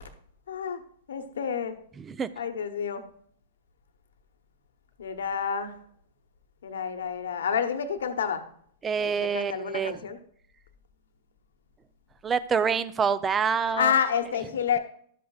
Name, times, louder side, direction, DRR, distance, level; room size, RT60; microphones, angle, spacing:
voice 1, 0.5-0.8 1.1-1.8 2.4-3.0 5.0-5.8 6.6-8.4 9.0-10.2 13.8-14.8, left 7 dB, 85° left, 8 dB, 1.1 m, -29 dB
voice 2, 8.8-10.0 12.2-13.9, right 6 dB, 20° right, 15 dB, 0.5 m, -26 dB
12.0 x 8.3 x 2.4 m, 0.62 s
hypercardioid pair, 125°, 0 cm